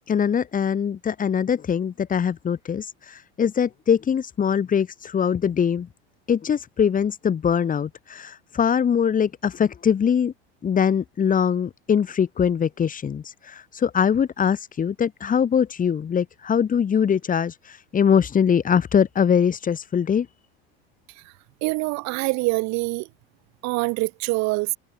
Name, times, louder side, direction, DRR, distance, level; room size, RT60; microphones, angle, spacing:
voice 1, 0.1-5.9 6.3-10.3 10.6-20.3, left 7 dB, 25° left, 5.0 m, -22 dB
voice 2, 21.6-23.1 23.6-24.8, right 26 dB, 60° right, 4.0 m, -25 dB
supercardioid pair, 125°, 30 cm